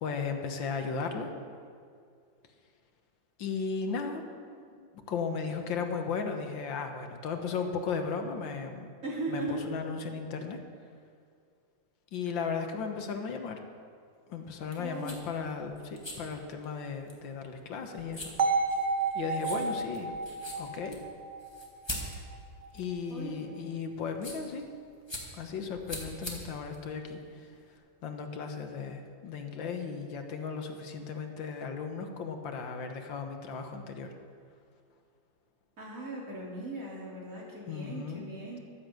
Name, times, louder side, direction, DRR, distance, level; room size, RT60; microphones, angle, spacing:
voice 1, 0.0-1.3 3.4-4.2 4.8-8.9 9.3-10.6 12.1-13.6 14.3-18.3 19.1-20.1 20.6-21.0 22.7-24.7 25.3-27.2 28.0-34.1 37.7-38.3, left 5 dB, 80° left, 5 dB, 1.9 m, -35 dB
voice 2, 3.8-4.2 9.0-9.7 14.8-15.2 23.1-23.7 35.8-38.6, right 2 dB, 45° right, -4 dB, 3.3 m, -38 dB
sound 1, 14.6-27.7, left 1 dB, 15° left, 2.0 m, -45 dB
sound 2, 18.4-22.4, right 4 dB, 65° right, 0.4 m, -31 dB
12.5 x 9.9 x 7.7 m, 2.3 s
omnidirectional pair, 2.1 m